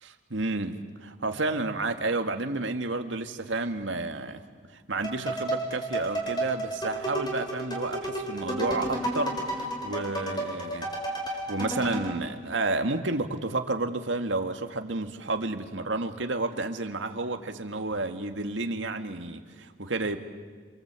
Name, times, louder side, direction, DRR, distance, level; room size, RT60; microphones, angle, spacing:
voice 1, 0.0-4.4 4.7-10.9 11.3-20.2, right 2 dB, 85° right, 6 dB, 1.9 m, -31 dB
sound 1, 5.0-12.2, right 1 dB, 25° left, 4.8 m, -32 dB
28.0 x 25.5 x 8.3 m, 1.5 s
head